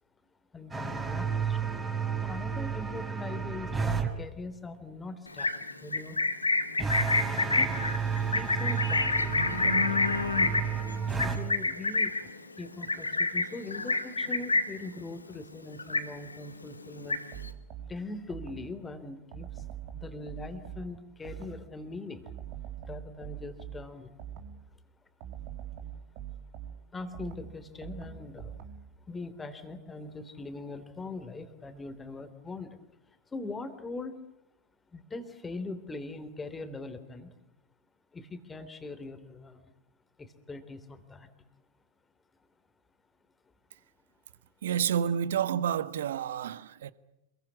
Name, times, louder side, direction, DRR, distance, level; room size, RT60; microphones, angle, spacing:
voice 1, 0.5-1.7 2.2-5.5 5.8-6.2 6.8-6.9 7.3-7.8 8.1-10.0 11.1-12.3 12.6-17.2 17.9-19.7 19.9-22.3 22.8-24.1 26.9-28.6 29.1-32.8 33.3-34.2 34.9-37.3 38.1-39.6 40.2-41.3, left 3 dB, 15° left, 3.3 m, -41 dB
sound 1, 0.7-4.1 6.8-11.4, right 6 dB, 15° right, 5.0 m, -32 dB
Livestock farm animals working animals, 5.3-14.9 15.2-15.5 15.8-16.5 16.8-17.5, left 3 dB, 80° left, 2.1 m, -28 dB
sound 2, 17.3-18.9 19.3-21.8 22.3-24.7 25.2-29.0, right 9 dB, 45° right, 3.3 m, -43 dB
voice 2, 44.6-46.9, right 9 dB, 60° right, 1.3 m, -29 dB
27.5 x 22.5 x 8.6 m
figure-of-eight pair, 90°, 0 cm